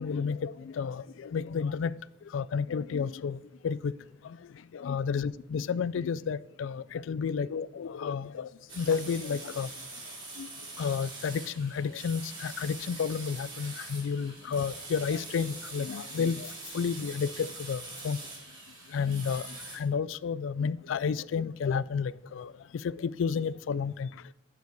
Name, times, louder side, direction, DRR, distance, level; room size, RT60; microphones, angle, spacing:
voice 1, 0.0-1.9 2.3-3.4 3.6-3.9 4.2-4.4 4.7-8.5 8.7-9.7 10.4-10.5 10.8-18.2 18.9-24.1, left 6 dB, 75° left, 17 dB, 0.3 m, -31 dB
sound 1, 8.7-19.8, right 3 dB, 80° right, 2.7 m, -43 dB
9.5 x 6.8 x 4.6 m, 0.89 s
head